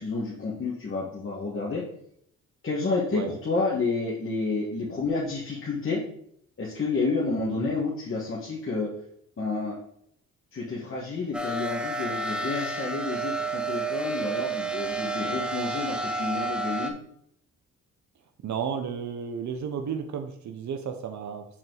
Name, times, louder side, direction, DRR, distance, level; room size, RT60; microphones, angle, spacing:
voice 1, 0.0-1.8 2.6-6.0 6.6-8.9 9.4-9.8 10.5-17.0, left 3 dB, 40° left, -6 dB, 1.7 m, -30 dB
sound 1, 11.3-16.9, right 3 dB, 5° right, 0.7 m, -30 dB
voice 2, 18.4-21.4, right 7 dB, 60° right, 7 dB, 0.8 m, -33 dB
6.0 x 4.4 x 4.0 m, 0.68 s
supercardioid pair, 60°, 33 cm